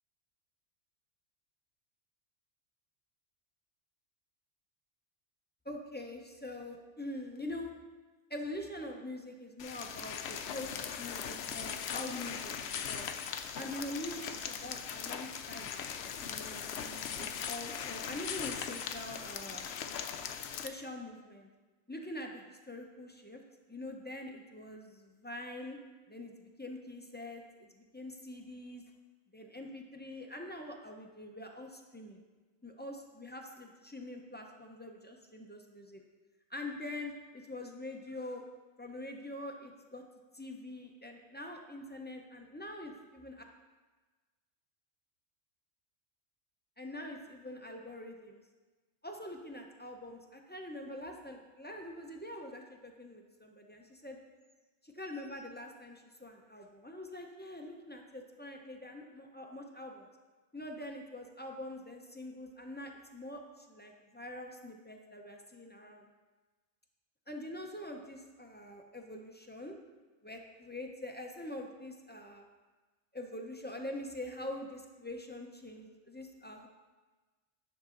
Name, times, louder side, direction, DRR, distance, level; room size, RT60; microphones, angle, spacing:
voice 1, 5.6-7.7 8.3-13.1 13.5-19.7 20.6-21.5 21.9-23.4 23.7-25.8 26.1-28.8 29.3-32.2 32.6-36.0 36.5-38.4 38.8-40.0 40.3-43.4 46.8-48.4 49.0-54.2 54.8-60.1 60.5-66.1 67.3-69.8 70.2-72.4 73.1-76.7, left 1 dB, 10° left, 2 dB, 0.5 m, -44 dB
sound 1, 9.6-20.7, left 7 dB, 70° left, 0.8 m, -40 dB
10.0 x 6.0 x 3.8 m, 1.3 s
omnidirectional pair, 1.2 m